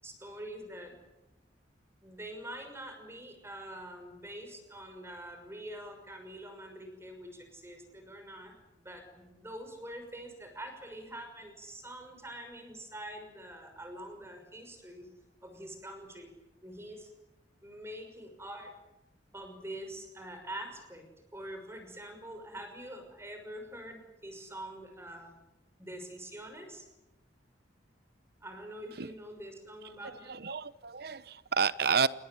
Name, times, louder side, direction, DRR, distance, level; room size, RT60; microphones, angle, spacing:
voice 1, 0.0-1.0 2.0-15.1 15.4-16.3 16.6-17.1 17.6-18.7 19.3-21.1 21.3-25.4 25.8-26.9 28.4-30.4, right 1 dB, 15° right, 5 dB, 6.1 m, -45 dB
voice 2, 30.3-32.1, right 5 dB, 60° right, 16 dB, 1.0 m, -30 dB
28.0 x 21.0 x 9.5 m, 0.94 s
head